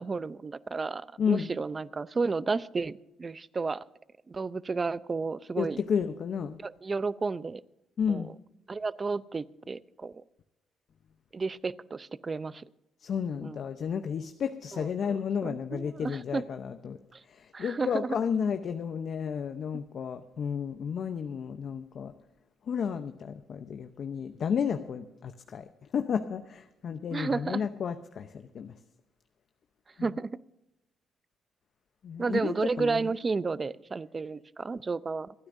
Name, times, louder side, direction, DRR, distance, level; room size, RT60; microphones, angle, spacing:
voice 1, 0.0-3.8 4.3-5.8 6.6-7.6 8.1-8.3 8.7-10.2 11.3-12.6 13.4-13.6 14.7-15.2 15.4-16.4 17.1-17.2 17.5-18.2 27.1-27.6 30.0-30.3 32.2-35.3, right 4 dB, 30° right, 16 dB, 0.5 m, -32 dB
voice 2, 1.2-1.5 5.6-6.6 8.0-8.3 13.0-17.0 17.2-22.1 22.7-28.7 32.0-33.1, left 7 dB, 60° left, 8 dB, 0.8 m, -32 dB
27.0 x 9.7 x 2.7 m, 0.90 s
cardioid pair, 90°, 0 cm